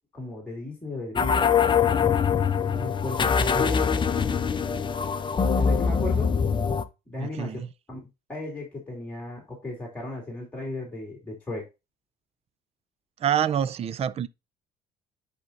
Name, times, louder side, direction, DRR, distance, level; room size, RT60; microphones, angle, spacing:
voice 1, 0.1-1.5 2.6-3.8 5.6-6.3 7.1-7.6 7.9-8.0 8.3-11.6, left 2 dB, 10° left, 2.9 m, -35 dB
sound 1, 1.2-6.8, left 6 dB, 30° left, 0.7 m, -23 dB
voice 2, 7.2-7.7 13.2-14.3, right 9 dB, 35° right, 0.4 m, -27 dB
11.0 x 4.3 x 2.6 m
cardioid pair, 110°, 17 cm